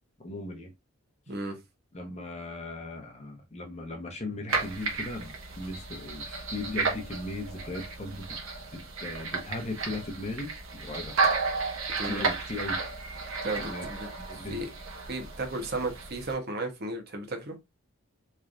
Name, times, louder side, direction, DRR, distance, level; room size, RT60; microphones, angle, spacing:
voice 1, 0.2-0.7 1.9-8.4 8.7-10.5 10.8-11.1 12.1-12.9 13.6-13.9 14.2-14.6, left 2 dB, 30° left, 0.8 m, -38 dB
voice 2, 1.3-1.6 12.0-12.3 13.4-14.7 15.1-17.5, right 2 dB, 45° right, 0.9 m, -34 dB
sound 1, 4.5-16.3, right 4 dB, 65° right, 1.1 m, -33 dB
3.9 x 3.2 x 2.5 m
head